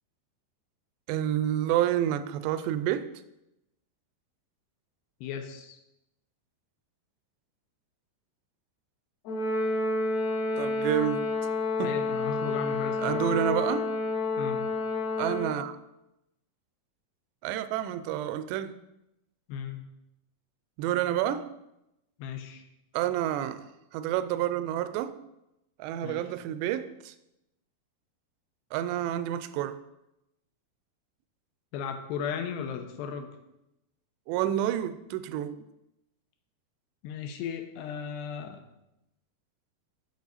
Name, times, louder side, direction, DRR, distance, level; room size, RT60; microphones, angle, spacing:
voice 1, 1.1-3.1 10.6-11.3 11.8-12.0 13.0-13.9 15.2-15.8 17.4-18.8 20.8-21.5 22.9-23.6 23.9-25.2 25.8-27.1 28.7-29.8 34.3-35.6, right 11 dB, 90° right, 2.8 m, -29 dB
voice 2, 5.2-5.8 11.8-13.4 14.4-14.7 19.5-19.9 22.2-22.6 26.0-26.2 31.7-33.4 37.0-38.6, left 7 dB, 85° left, 2.8 m, -36 dB
Brass instrument, 9.3-15.6, left 3 dB, 60° left, 2.1 m, -29 dB
8.4 x 6.5 x 4.0 m
omnidirectional pair, 4.9 m